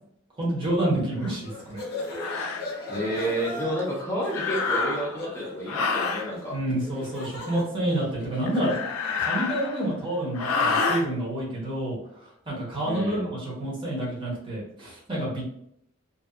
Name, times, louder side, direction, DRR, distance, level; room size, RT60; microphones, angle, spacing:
voice 1, 0.4-1.8 6.5-8.7 9.2-12.0 12.5-13.3 13.6-15.5, right 1 dB, 25° right, -6 dB, 0.9 m, -28 dB
sound 1, 1.2-1.4 2.1-2.6 4.3-5.2 5.7-6.3 8.5-9.9 10.3-11.0, left 4 dB, 85° left, 0.4 m, -28 dB
sound 2, 1.4-8.9, left 2 dB, 50° left, 0.7 m, -38 dB
voice 2, 2.9-6.6 12.8-13.3, right 1 dB, 15° left, -4 dB, 0.5 m, -30 dB
2.6 x 2.3 x 2.3 m, 0.72 s
head